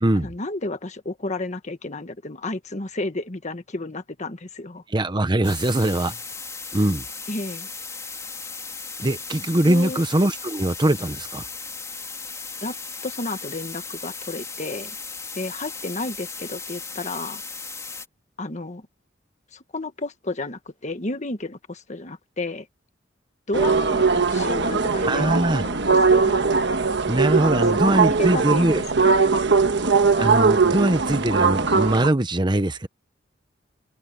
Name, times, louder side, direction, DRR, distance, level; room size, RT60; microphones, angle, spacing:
voice 1, 0.2-4.8 7.3-7.7 9.6-10.0 12.6-12.7 13.0-14.9 15.4-17.4 18.4-18.9 19.5-22.7 23.5-25.4 25.6-26.4 27.5-27.6 27.9-29.2, left 2 dB, 40° left, 1.5 m, -32 dB
voice 2, 4.9-6.2 6.7-7.0 9.0-11.4 25.0-25.6 27.1-28.8 30.2-32.9, right 1 dB, 25° right, 0.9 m, -22 dB
sound 1, 5.4-18.1, left 4 dB, 15° left, 3.1 m, -36 dB
sound 2, 23.5-32.1, right 4 dB, 65° right, 1.4 m, -20 dB
head